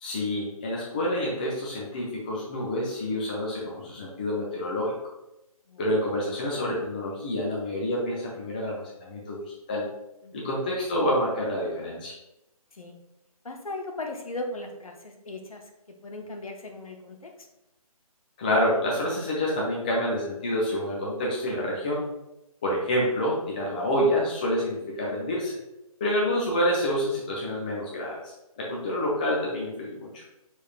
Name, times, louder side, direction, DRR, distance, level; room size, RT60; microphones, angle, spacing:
voice 1, 0.0-4.9 5.8-9.9 10.3-12.2 18.4-22.1 22.6-25.6 26.0-30.2, equal, 15° left, -4 dB, 0.4 m, -28 dB
voice 2, 13.4-15.7 16.0-17.3, left 2 dB, 65° left, 3 dB, 0.9 m, -37 dB
6.1 x 3.5 x 2.4 m, 0.91 s
figure-of-eight pair, 145°, 19 cm